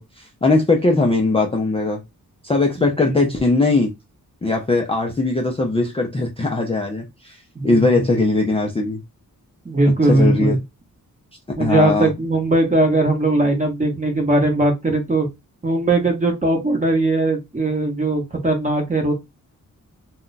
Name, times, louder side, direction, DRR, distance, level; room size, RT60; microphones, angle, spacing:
voice 1, 0.0-2.0 2.4-3.9 4.4-7.4 7.6-9.0 9.9-10.6 11.6-12.1, left 3 dB, 15° left, 0.4 m, -20 dB
voice 2, 2.8-3.1 7.5-8.0 9.6-10.6 11.6-15.3 15.6-19.1, right 2 dB, 20° right, 0.8 m, -19 dB
2.3 x 2.1 x 3.8 m
wide cardioid pair, 165°, 34 cm